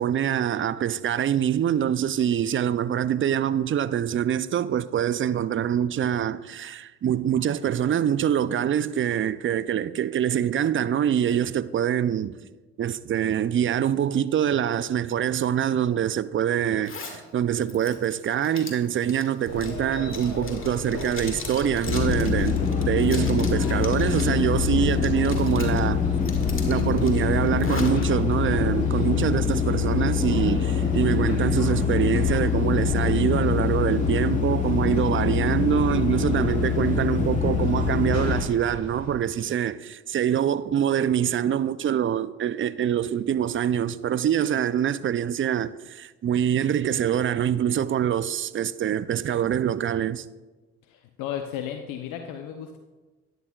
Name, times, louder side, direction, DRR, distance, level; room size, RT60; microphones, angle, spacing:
voice 1, 0.0-12.4 12.8-26.0 26.7-50.2, right 9 dB, 40° right, 0.5 m, -25 dB
Zipper (clothing), 16.8-17.2 17.6-24.4 24.7-25.8 26.2-28.0, left 4 dB, 40° left, 2.1 m, -40 dB
sound 1, 19.4-39.1, left 3 dB, 60° left, 3.0 m, -35 dB
sound 2, 21.9-38.4, left 7 dB, 25° left, 1.2 m, -24 dB
voice 2, 50.9-52.8, left 9 dB, 75° left, 0.8 m, -34 dB
12.0 x 11.0 x 2.4 m
supercardioid pair, 60°, 32 cm